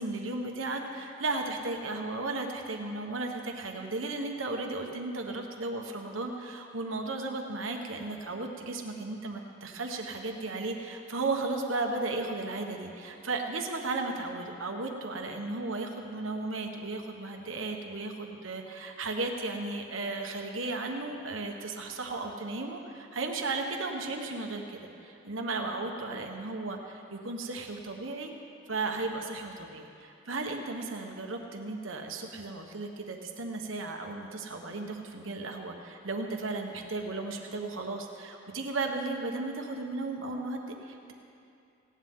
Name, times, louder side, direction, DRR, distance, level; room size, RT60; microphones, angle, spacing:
voice 1, 0.0-28.3 28.7-41.1, right 3 dB, 85° right, 3 dB, 1.4 m, -35 dB
19.0 x 17.0 x 3.8 m, 2.6 s
head